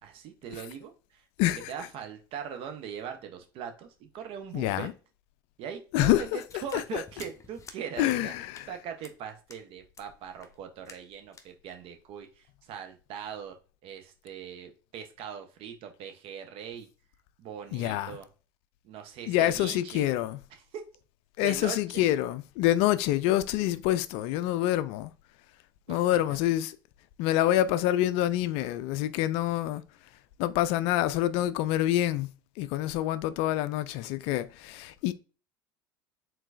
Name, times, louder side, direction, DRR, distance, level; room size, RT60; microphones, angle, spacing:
voice 1, 0.0-4.9 5.6-13.6 13.8-16.9 17.4-18.3 18.8-20.1 20.5-20.8 21.4-22.0 25.9-26.4, right 8 dB, 55° right, 0.9 m, -41 dB
voice 2, 1.4-1.7 4.5-4.9 5.9-6.4 6.7-7.0 8.0-8.6 17.7-18.1 19.3-20.4 21.4-25.1 25.9-26.8 27.2-29.8 30.4-32.3 32.6-35.1, left 13 dB, 60° left, 0.4 m, -26 dB
sound 1, 6.3-7.8 8.1-8.2 8.5-8.7 9.0-9.2 9.5-9.6 9.9-10.1 10.4-10.6 10.9-11.1 11.3-11.5, left 5 dB, 25° left, 0.7 m, -51 dB
4.5 x 3.8 x 2.6 m
hypercardioid pair, 70°, 12 cm